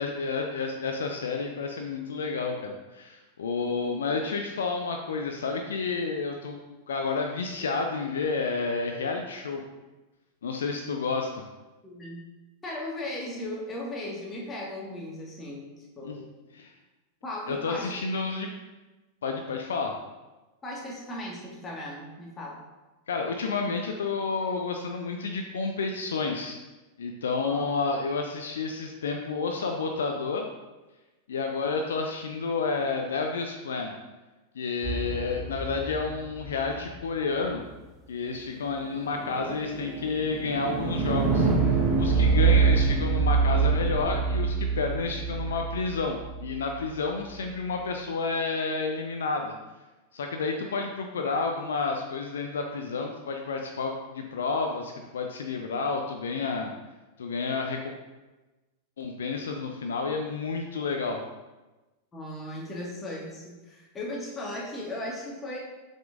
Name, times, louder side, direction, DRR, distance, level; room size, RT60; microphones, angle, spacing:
voice 1, 0.0-6.6 6.9-9.6 10.4-11.4 16.0-16.2 16.5-16.7 17.5-18.5 19.2-19.9 23.1-26.6 27.0-30.5 31.3-33.9 34.6-37.6 38.1-49.5 50.1-56.7 57.2-57.9 59.0-61.2, left 4 dB, 65° left, 3 dB, 0.5 m, -30 dB
voice 2, 11.8-12.2 12.6-16.2 17.2-17.9 20.6-22.6 27.4-27.6 36.7-36.8 62.1-65.6, left 1 dB, 20° left, -4 dB, 1.7 m, -37 dB
sound 1, 34.8-37.0 38.8-46.9, right 5 dB, 20° right, 1.2 m, -26 dB
7.6 x 5.3 x 2.5 m, 1.1 s
figure-of-eight pair, 90°, 0 cm